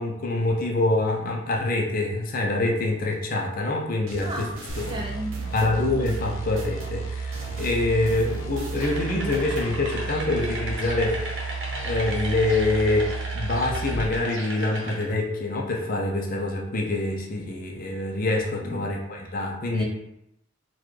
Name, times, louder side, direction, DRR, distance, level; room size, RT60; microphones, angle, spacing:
voice 1, 0.0-4.5 4.9-5.0 5.5-11.2 11.8-19.8, left 2 dB, 45° left, 0 dB, 0.5 m, -25 dB
sound 1, 4.1-6.9 7.3-9.7, right 1 dB, 85° right, 0.6 m, -42 dB
sound 2, 4.7-14.1, right 4 dB, 80° left, 0.7 m, -32 dB
voice 2, 4.9-5.4 18.6-18.8 19.7-19.8, equal, 25° right, 0 dB, 0.5 m, -33 dB
sound 3, 8.7-15.0, right 1 dB, 65° right, 0.8 m, -35 dB
3.9 x 2.2 x 3.1 m, 0.82 s
head